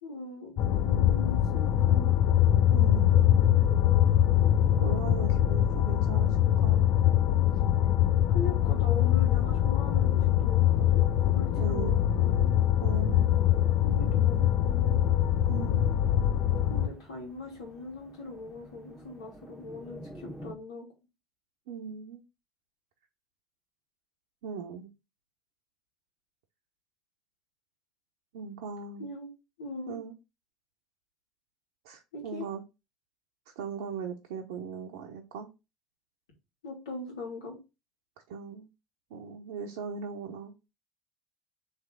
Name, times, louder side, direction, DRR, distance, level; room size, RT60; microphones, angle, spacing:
voice 1, 0.0-2.1 8.3-12.5 13.8-15.0 16.7-20.9 29.0-29.3 29.6-30.0 32.1-32.5 36.6-37.6, left 3 dB, 85° left, -1 dB, 2.0 m, -40 dB
sound 1, 0.6-16.9, left 11 dB, 55° left, 0.4 m, -23 dB
sound 2, 1.2-20.5, right 1 dB, ahead, 1.0 m, -44 dB
voice 2, 2.7-3.3 4.8-6.9 11.6-11.9 12.8-13.3 15.5-15.9 21.7-22.2 24.4-24.9 28.3-29.1 29.9-30.1 31.8-32.6 33.6-35.5 38.3-38.7 39.1-40.5, right 6 dB, 75° right, 1 dB, 0.7 m, -39 dB
3.4 x 3.3 x 4.5 m, 0.27 s
hypercardioid pair, 75°, 3 cm